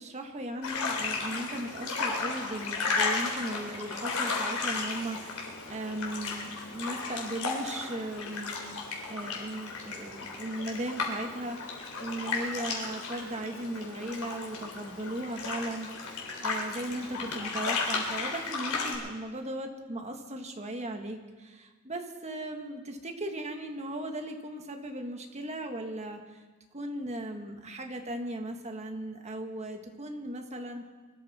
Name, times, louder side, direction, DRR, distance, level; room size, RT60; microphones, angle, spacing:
voice 1, 0.0-8.8 9.1-26.4 26.7-30.9, right 1 dB, 30° right, 4 dB, 1.6 m, -37 dB
sound 1, 0.6-18.9, left 4 dB, 85° left, 3.6 m, -34 dB
23.5 x 13.0 x 4.3 m, 1.3 s
head